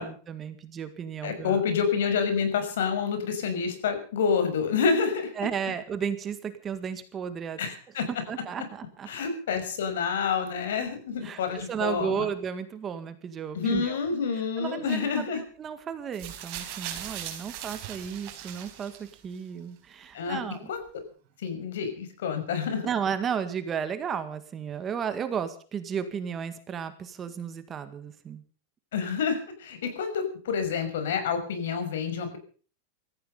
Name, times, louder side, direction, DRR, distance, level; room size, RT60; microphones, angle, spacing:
voice 1, 0.0-1.6 5.4-7.6 8.1-9.1 11.2-14.0 14.6-15.1 15.3-20.7 22.8-28.4 29.8-29.9, right 7 dB, 20° right, 10 dB, 1.8 m, -33 dB
voice 2, 1.2-5.3 7.6-8.1 9.1-12.3 13.5-15.4 20.1-20.4 20.7-20.8 21.4-22.9 28.9-32.4, left 6 dB, 85° left, 9 dB, 5.9 m, -28 dB
sound 1, 16.1-19.4 20.3-20.4, right 11 dB, 45° right, 4.4 m, -39 dB
18.0 x 14.5 x 5.4 m, 0.41 s
supercardioid pair, 160°, 0 cm